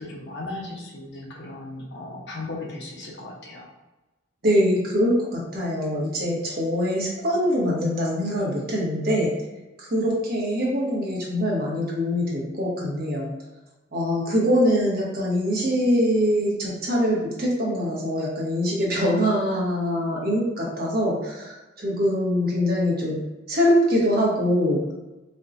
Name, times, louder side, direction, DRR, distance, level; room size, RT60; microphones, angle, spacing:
voice 1, 0.0-3.7, left 2 dB, 60° left, -2 dB, 0.8 m, -36 dB
voice 2, 4.4-9.3 9.8-13.3 13.9-23.2 23.5-24.8, equal, 50° right, -4 dB, 1.0 m, -23 dB
4.3 x 2.2 x 2.6 m, 1.1 s
head